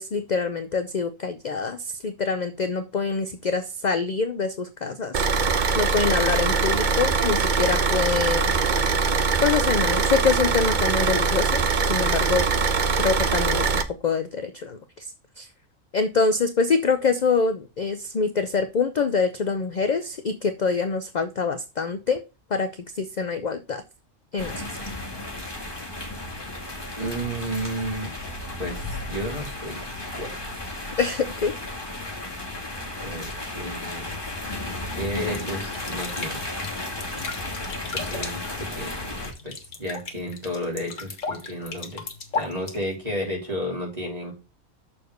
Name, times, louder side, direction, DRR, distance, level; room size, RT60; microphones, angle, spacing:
voice 1, 0.0-5.3 5.8-8.5 9.4-11.6 11.9-12.5 13.0-13.7 14.0-15.1 15.4-15.5 15.9-22.2 22.5-23.8 24.3-24.5 31.0-31.5, left 5 dB, 50° left, 9 dB, 0.5 m, -25 dB
Car / Idling, 5.1-13.8, right 4 dB, 45° right, 0.7 m, -22 dB
sound 1, 24.4-39.3, left 2 dB, 20° left, 1.7 m, -34 dB
voice 2, 27.0-28.1 28.6-28.8 29.1-29.8 30.2-30.3 33.0-33.2 33.5-34.2 34.9-36.4 37.9-38.9 39.4-42.0 42.3-44.3, equal, 30° right, -2 dB, 3.4 m, -32 dB
sound 2, 35.1-43.3, left 4 dB, 70° left, 1.7 m, -36 dB
6.7 x 4.3 x 6.5 m, 0.30 s
omnidirectional pair, 1.4 m